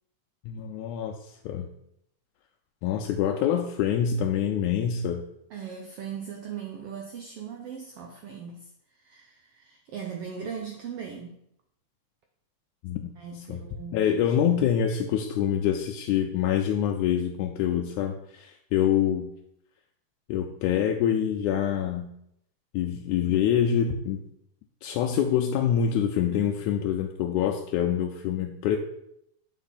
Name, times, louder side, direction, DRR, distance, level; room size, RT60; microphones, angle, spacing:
voice 1, 0.4-1.7 2.8-5.2 12.8-13.1 13.5-13.6 13.9-19.3 20.3-22.1 22.7-24.3 24.8-28.8, left 9 dB, 85° left, 3 dB, 2.0 m, -26 dB
voice 2, 5.5-11.4 13.2-14.1 14.4-14.5, right 7 dB, 80° right, 2 dB, 1.3 m, -39 dB
8.1 x 4.3 x 4.1 m, 0.76 s
omnidirectional pair, 3.4 m